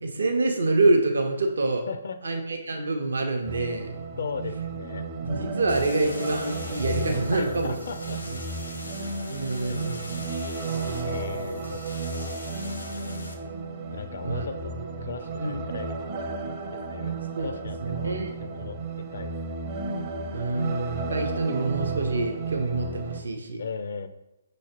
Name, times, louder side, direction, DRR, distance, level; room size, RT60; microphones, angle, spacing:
voice 1, 0.0-1.8 2.2-3.9 5.2-7.7 8.3-8.4 9.0-10.1 14.2-14.4 15.4-15.6 17.4-17.5 17.8-18.3 20.3-23.6, right 2 dB, 70° right, 3 dB, 0.7 m, -26 dB
voice 2, 1.9-2.4 4.2-5.1 7.3-8.2 8.7-8.8 9.6-9.8 11.0-11.8 12.1-12.5 13.9-15.9 16.7-19.6 23.6-24.1, left 5 dB, 60° left, 9 dB, 0.4 m, -37 dB
sound 1, 3.5-23.2, right 4 dB, 35° right, 0.6 m, -33 dB
sound 2, 5.7-13.3, left 2 dB, 85° left, 0.9 m, -42 dB
5.6 x 3.1 x 2.9 m, 0.96 s
figure-of-eight pair, 135°, 0 cm